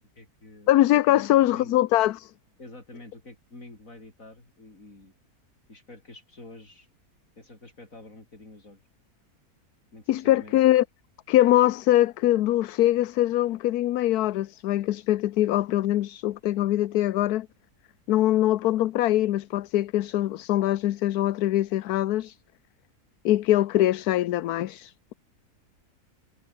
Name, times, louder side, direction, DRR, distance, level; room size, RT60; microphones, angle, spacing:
voice 1, 0.0-0.8 1.1-1.7 2.6-5.1 5.7-6.9 7.4-8.8 9.9-10.6, left 2 dB, 60° left, 6.5 m, -47 dB
voice 2, 0.7-2.3 10.1-10.8 11.3-17.5 18.1-22.4 23.2-25.1, left 14 dB, 80° left, 1.2 m, -23 dB
omnidirectional pair, 1.6 m